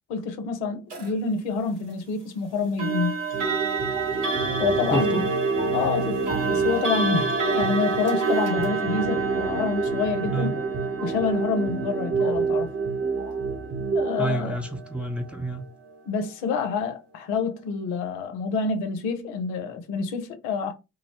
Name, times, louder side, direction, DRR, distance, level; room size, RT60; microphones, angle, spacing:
voice 1, 0.1-3.2 4.6-5.2 5.7-10.5 11.0-12.7 13.9-14.6 16.1-20.7, left 5 dB, 75° left, 0.6 m, -27 dB
sound 1, 0.9-1.1 2.8-15.6, right 4 dB, 80° right, 1.0 m, -29 dB
sound 2, 3.3-14.3, right 4 dB, 30° right, 0.9 m, -29 dB
voice 2, 4.9-5.2 10.3-10.5 14.2-15.7, right 2 dB, 5° right, 0.6 m, -28 dB
2.3 x 2.0 x 2.8 m
hypercardioid pair, 45°, 38 cm